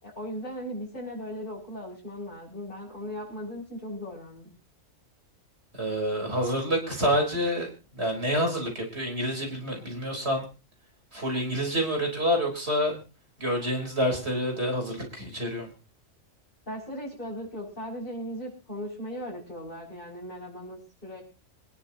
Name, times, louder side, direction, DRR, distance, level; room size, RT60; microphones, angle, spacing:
voice 1, 0.0-4.5 16.7-21.2, equal, 35° left, -7 dB, 7.2 m, -38 dB
voice 2, 5.7-7.7 8.0-10.5 11.1-12.9 13.4-15.7, equal, 50° right, 1 dB, 4.7 m, -27 dB
27.0 x 10.5 x 2.9 m, 0.32 s
omnidirectional pair, 1.4 m